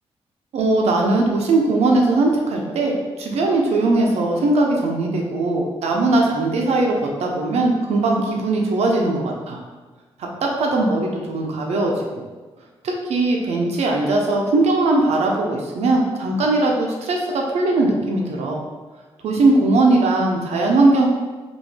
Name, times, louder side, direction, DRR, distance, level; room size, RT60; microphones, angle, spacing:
voice 1, 0.5-9.6 10.4-12.1 12.8-18.6 19.2-21.1, right 2 dB, 85° right, 0 dB, 0.8 m, -19 dB
5.2 x 2.7 x 3.3 m, 1.3 s
cardioid pair, 95°, 11 cm